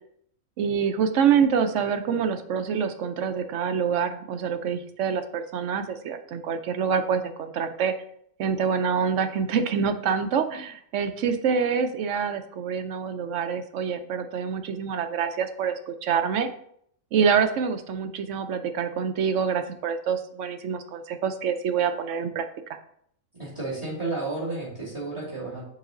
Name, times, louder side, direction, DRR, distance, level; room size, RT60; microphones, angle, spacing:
voice 1, 0.6-7.9 8.4-16.5 17.1-22.8, right 7 dB, 70° right, 8 dB, 0.9 m, -26 dB
voice 2, 23.3-25.7, right 3 dB, 20° right, -9 dB, 2.5 m, -32 dB
6.2 x 4.8 x 3.7 m, 0.68 s
omnidirectional pair, 1.4 m